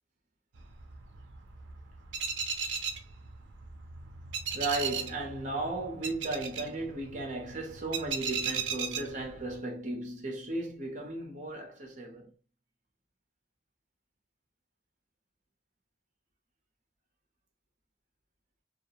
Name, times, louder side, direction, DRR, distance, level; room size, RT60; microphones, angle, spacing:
sound 1, 0.5-9.6, right 6 dB, 85° right, 0.5 m, -37 dB
voice 1, 4.5-12.3, right 2 dB, 45° right, 0.8 m, -35 dB
2.4 x 2.1 x 2.8 m
head